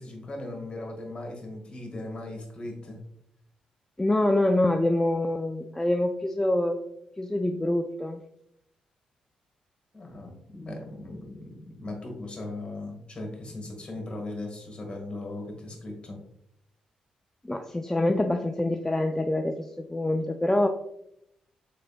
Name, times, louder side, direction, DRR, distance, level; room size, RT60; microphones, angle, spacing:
voice 1, 0.0-3.0 9.9-16.2, left 2 dB, 35° left, 0 dB, 1.3 m, -38 dB
voice 2, 4.0-6.8 7.2-8.2 17.4-20.7, left 1 dB, 10° left, 5 dB, 0.3 m, -25 dB
3.7 x 3.4 x 2.4 m, 0.77 s
hypercardioid pair, 45°, 3 cm